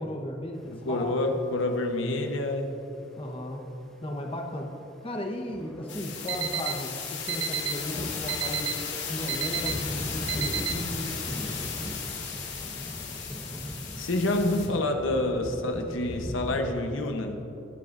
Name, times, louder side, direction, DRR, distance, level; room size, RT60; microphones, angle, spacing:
voice 1, 0.0-1.2 3.2-3.7 4.0-4.8 5.0-6.9 7.2-8.7 9.1-11.4, left 1 dB, 30° left, 1 dB, 1.2 m, -35 dB
sound 1, 0.6-6.6 7.2-7.3 7.5-16.6, equal, 5° left, 1.3 m, -39 dB
voice 2, 0.7-2.8 14.0-17.4, left 2 dB, 90° left, 4 dB, 1.1 m, -28 dB
sound 2, 5.9-14.7, left 6 dB, 65° left, 2.4 m, -36 dB
Alarm, 6.3-6.7 7.3-7.7 8.3-8.7 9.3-9.7 10.3-10.7, right 11 dB, 65° right, 0.6 m, -29 dB
21.5 x 10.5 x 2.6 m, 2.9 s
head